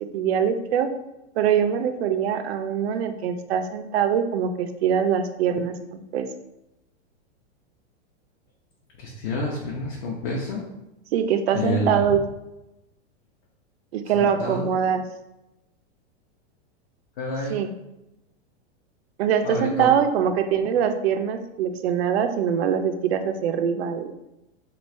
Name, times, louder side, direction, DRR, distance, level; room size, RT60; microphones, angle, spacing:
voice 1, 0.1-0.9 1.4-6.3 11.1-12.2 13.9-15.0 17.5-17.7 19.2-24.1, right 8 dB, 65° right, 8 dB, 0.5 m, -23 dB
voice 2, 9.0-10.6 11.5-12.0 14.1-14.7 17.2-17.6 19.4-19.9, left 2 dB, 45° left, -3 dB, 0.7 m, -28 dB
3.1 x 2.4 x 4.3 m, 0.92 s
supercardioid pair, 160°, 34 cm